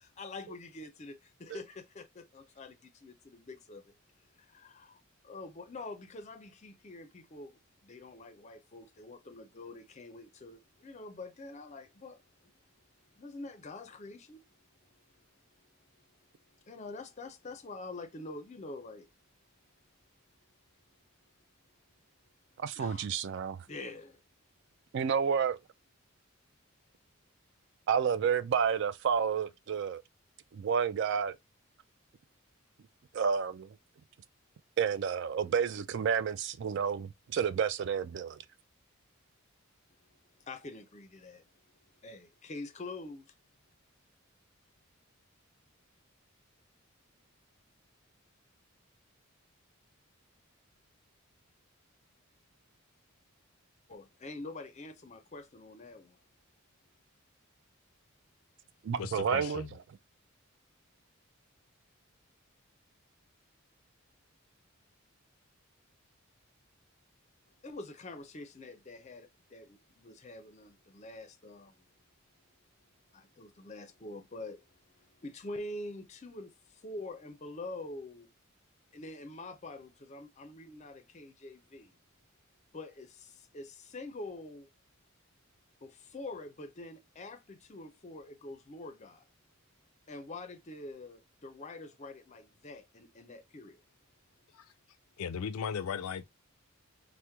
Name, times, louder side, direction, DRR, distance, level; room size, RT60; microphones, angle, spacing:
voice 1, 0.0-4.0 4.4-12.2 13.1-14.4 15.6-15.7 16.7-19.1 22.8-23.1 23.7-24.2 40.4-41.4 42.0-43.3 53.9-56.2 67.6-71.8 73.1-78.3 78.9-82.0 82.7-84.7 85.8-89.2 90.1-93.8, left 2 dB, 30° left, 0.5 m, -46 dB
voice 2, 22.6-23.6 24.9-25.6 27.9-30.0 30.5-31.4 33.1-33.7 34.8-38.4 58.8-59.6, right 7 dB, 55° right, 0.3 m, -30 dB
voice 3, 59.0-59.7 94.5-94.7 95.2-96.2, left 7 dB, 90° left, 0.4 m, -36 dB
2.9 x 2.1 x 3.3 m
head